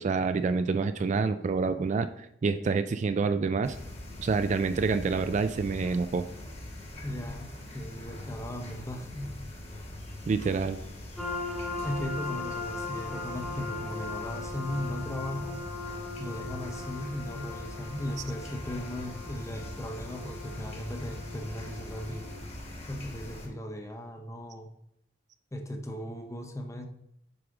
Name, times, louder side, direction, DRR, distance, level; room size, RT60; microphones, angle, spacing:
voice 1, 0.0-3.8 4.2-6.3 10.3-10.8, right 4 dB, 40° right, 10 dB, 0.3 m, -27 dB
sound 1, 3.6-23.5, left 1 dB, 35° left, 1.3 m, -42 dB
voice 2, 7.0-9.5 11.8-15.6 16.2-22.3 22.9-24.7 25.5-26.9, left 1 dB, 15° left, 4 dB, 0.7 m, -37 dB
sound 2, 11.2-22.4, left 3 dB, ahead, 1.2 m, -39 dB
7.9 x 5.1 x 3.6 m, 0.77 s
head